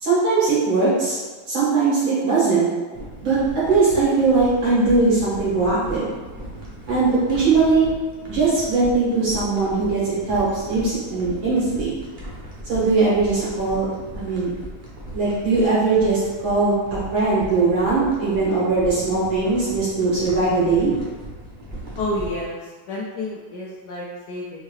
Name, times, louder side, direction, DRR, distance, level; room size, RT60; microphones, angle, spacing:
voice 1, 0.0-1.2 1.5-2.7 3.2-6.1 6.9-7.9 8.3-12.0 12.7-13.9 14.1-14.5 15.1-20.9, right 3 dB, 75° right, -9 dB, 2.4 m, -20 dB
sound 1, 2.9-22.4, right 1 dB, 55° right, 0.5 m, -37 dB
voice 2, 22.0-24.6, left 1 dB, 75° left, -5 dB, 0.9 m, -30 dB
4.5 x 2.6 x 3.2 m, 1.3 s
omnidirectional pair, 2.2 m